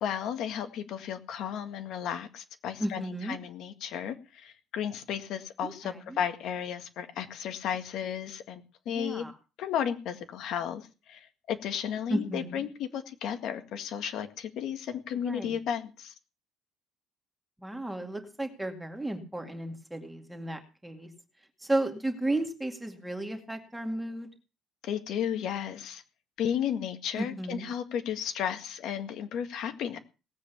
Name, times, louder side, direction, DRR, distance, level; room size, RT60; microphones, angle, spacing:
voice 1, 0.0-9.2 9.6-16.1 24.8-26.0 26.4-30.0, left 9 dB, 55° left, 7 dB, 1.9 m, -34 dB
voice 2, 2.8-3.4 5.6-6.2 8.9-9.3 12.1-12.7 15.2-15.6 17.6-21.1 21.6-24.3 27.2-27.7, right 1 dB, 5° right, 4 dB, 2.2 m, -34 dB
18.5 x 8.3 x 7.0 m, 0.32 s
cardioid pair, 175°, 0 cm